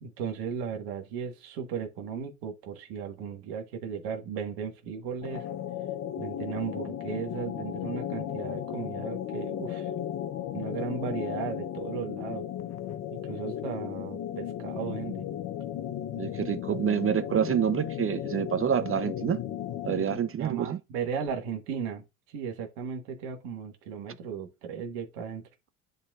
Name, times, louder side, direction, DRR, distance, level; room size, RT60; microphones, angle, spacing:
voice 1, 0.0-5.5 6.2-9.9 10.5-12.5 13.1-15.3 20.4-25.4, right 7 dB, 70° right, 1.6 m, -36 dB
sound 1, 5.2-20.3, left 10 dB, 40° left, 0.8 m, -35 dB
voice 2, 16.2-19.4 19.8-20.8, right 8 dB, 30° right, 0.7 m, -27 dB
10.5 x 4.0 x 2.4 m
hypercardioid pair, 65°, 41 cm